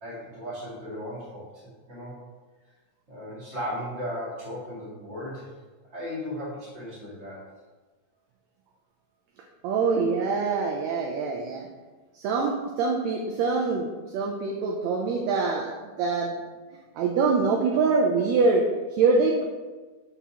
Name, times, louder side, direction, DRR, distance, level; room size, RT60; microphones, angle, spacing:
voice 1, 0.0-1.5 1.9-2.1 3.1-5.5 5.9-7.4, equal, 25° right, -8 dB, 1.7 m, -36 dB
voice 2, 9.6-11.7 12.1-16.4 16.9-18.6 18.9-19.4, right 4 dB, 80° right, 0 dB, 1.6 m, -24 dB
6.1 x 5.5 x 2.8 m, 1.3 s
omnidirectional pair, 3.7 m